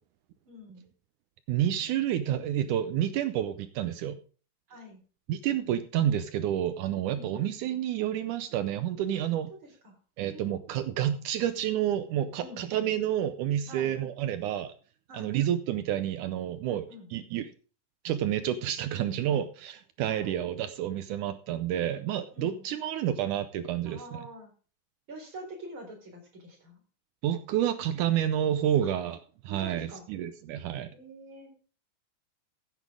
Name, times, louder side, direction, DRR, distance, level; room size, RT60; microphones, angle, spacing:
voice 1, 0.5-0.9 4.7-5.0 7.1-7.4 9.6-10.7 12.4-12.6 13.7-14.0 15.1-15.4 16.6-17.1 18.9-19.2 20.1-20.4 22.3-22.6 23.8-24.5 25.1-26.8 28.8-28.9 29.5-30.0 30.9-31.5, equal, 35° right, 1 dB, 4.6 m, -46 dB
voice 2, 1.5-4.2 5.3-9.5 10.2-14.7 15.1-16.9 17.1-17.5 18.0-24.2 27.2-29.2 29.4-30.9, right 11 dB, 75° right, 11 dB, 2.0 m, -29 dB
14.5 x 8.1 x 3.6 m, 0.38 s
omnidirectional pair, 3.9 m